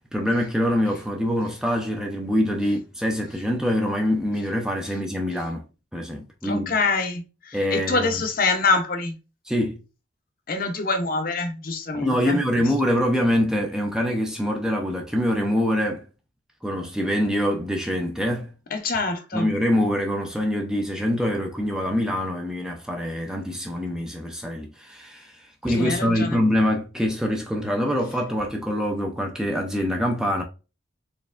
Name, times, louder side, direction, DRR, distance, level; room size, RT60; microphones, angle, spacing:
voice 1, 0.1-5.6 5.9-6.7 7.5-8.2 9.5-9.8 11.9-16.0 16.6-18.5 19.3-30.4, equal, 5° right, 0.4 m, -24 dB
voice 2, 6.4-9.1 10.5-12.4 18.7-19.5 25.7-26.4, left 3 dB, 45° left, 0.6 m, -25 dB
4.3 x 3.3 x 2.4 m
head